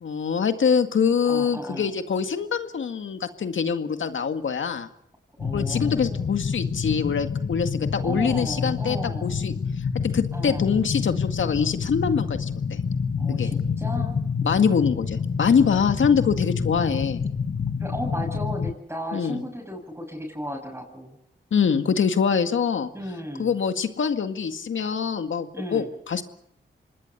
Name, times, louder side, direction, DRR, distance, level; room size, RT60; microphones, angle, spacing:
voice 1, 0.0-4.9 5.5-9.5 10.0-12.8 13.3-13.5 14.4-17.2 19.1-19.4 21.5-22.9 23.4-26.2, left 6 dB, 80° left, 8 dB, 2.0 m, -24 dB
voice 2, 1.3-1.9 5.4-6.3 8.0-9.3 10.3-10.6 13.2-14.2 17.8-21.1 22.9-23.5 25.5-25.9, equal, 10° right, -1 dB, 7.7 m, -34 dB
sound 1, 5.4-18.7, left 6 dB, 55° left, 1.2 m, -28 dB
26.5 x 20.0 x 6.9 m, 0.73 s
cardioid pair, 45°, 20 cm